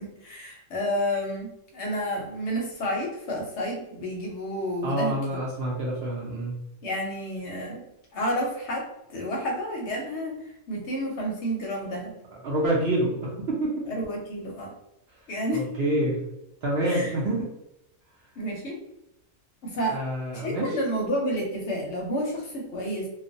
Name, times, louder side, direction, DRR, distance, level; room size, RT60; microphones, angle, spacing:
voice 1, 0.0-5.2 6.8-7.9 8.1-12.1 13.9-14.7 15.3-15.6 16.8-17.1 18.4-18.8 19.6-20.0 20.3-23.1, equal, 65° left, -1 dB, 0.8 m, -30 dB
voice 2, 4.8-6.5 12.4-13.8 15.5-16.2 16.6-17.5 19.9-20.7, right 1 dB, 60° right, -4 dB, 0.7 m, -27 dB
2.4 x 2.0 x 2.5 m, 0.84 s
omnidirectional pair, 1.4 m